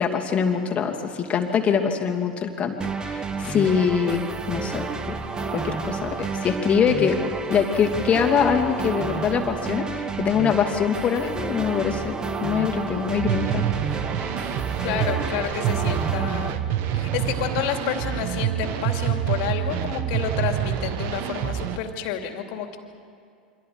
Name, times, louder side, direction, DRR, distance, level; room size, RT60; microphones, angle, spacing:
voice 1, 0.0-4.2 4.5-5.2 5.5-12.2 12.4-13.6, left 7 dB, 25° left, 2 dB, 2.7 m, -23 dB
sound 1, 2.8-16.5, right 4 dB, 15° right, 1.3 m, -30 dB
sound 2, 13.2-21.8, right 10 dB, 45° right, 1.3 m, -27 dB
voice 2, 14.8-16.6 16.9-22.8, left 8 dB, 50° left, 4 dB, 2.7 m, -29 dB
28.5 x 24.5 x 4.9 m, 2.3 s
figure-of-eight pair, 90°, 5 cm